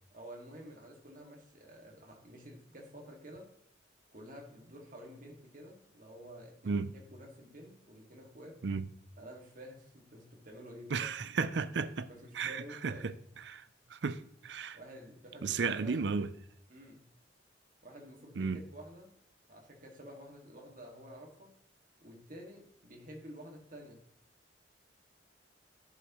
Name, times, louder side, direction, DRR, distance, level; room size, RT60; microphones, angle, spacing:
voice 1, 0.1-3.5 4.1-8.6 9.2-11.1 12.1-13.2 14.7-16.1 16.7-17.0 17.8-19.1 19.5-21.5 22.0-24.0, equal, 45° right, 2.0 m, -50 dB
voice 2, 10.9-12.1 12.4-13.1 13.4-13.6 13.9-14.8 15.4-16.3 18.4-18.6, right 5 dB, 65° right, 0.5 m, -34 dB
11.0 x 6.5 x 3.0 m
head